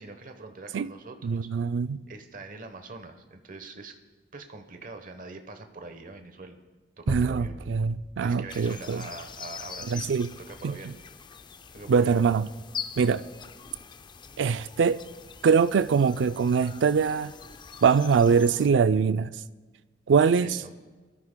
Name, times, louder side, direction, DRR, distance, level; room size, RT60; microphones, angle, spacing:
voice 1, 0.0-1.5 2.1-4.0 4.3-6.6 7.0-7.6 8.2-10.1 10.4-10.9 11.7-12.2 20.4-20.7, right 3 dB, 50° right, 1.0 m, -43 dB
voice 2, 1.2-2.0 7.1-9.0 9.9-10.3 10.6-10.7 11.9-12.5 13.0-13.2 14.4-15.0 15.4-17.3 17.8-19.3 20.1-20.6, right 6 dB, 90° right, 0.4 m, -23 dB
sound 1, 7.1-9.0, equal, 15° right, 0.7 m, -36 dB
sound 2, 8.5-18.7, left 6 dB, 25° left, 0.4 m, -43 dB
22.0 x 13.5 x 2.2 m
head